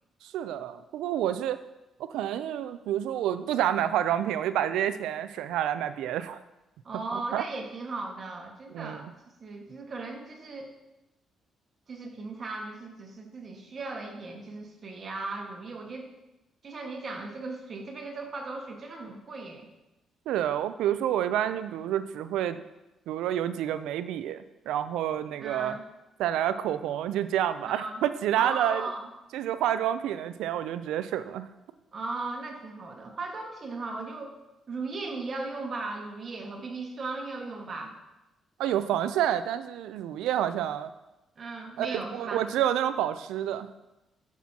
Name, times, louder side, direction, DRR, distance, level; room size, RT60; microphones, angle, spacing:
voice 1, 0.2-1.6 2.0-6.4 7.1-7.4 8.7-9.0 20.3-22.6 23.1-25.8 26.2-28.9 29.3-31.5 38.6-40.9 41.8-43.7, right 11 dB, 90° right, 12 dB, 0.4 m, -29 dB
voice 2, 6.8-9.1 9.4-10.7 11.9-16.1 16.6-19.7 25.4-25.8 27.6-28.0 28.3-29.1 31.9-34.3 34.7-37.9 41.4-42.4, right 3 dB, 45° right, 2 dB, 1.5 m, -37 dB
11.5 x 6.0 x 2.8 m, 0.97 s
cardioid pair, 90°, 0 cm